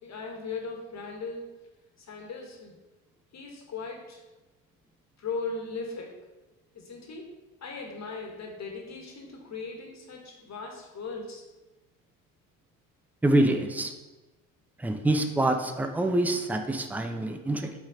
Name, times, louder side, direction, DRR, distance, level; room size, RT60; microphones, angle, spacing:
voice 1, 0.0-1.5 2.0-2.8 3.3-4.2 5.2-6.1 6.7-7.3 7.6-11.4, left 4 dB, 40° left, 1 dB, 1.9 m, -38 dB
voice 2, 13.2-13.9 14.8-17.7, right 1 dB, 5° right, 6 dB, 0.7 m, -26 dB
6.1 x 4.2 x 5.2 m, 1.1 s
hypercardioid pair, 65°, 40 cm